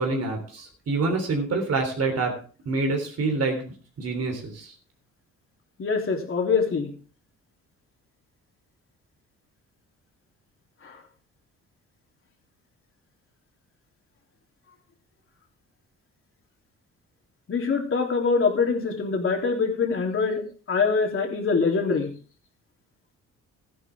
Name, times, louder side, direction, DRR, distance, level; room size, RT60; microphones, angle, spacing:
voice 1, 0.0-2.4 2.7-4.7, right 3 dB, 55° right, 3 dB, 3.5 m, -27 dB
voice 2, 5.8-6.9 10.8-11.0 17.5-20.4 20.7-22.1, left 4 dB, 45° left, 2 dB, 3.4 m, -24 dB
14.0 x 11.0 x 3.6 m, 0.40 s
cardioid pair, 90°, 30 cm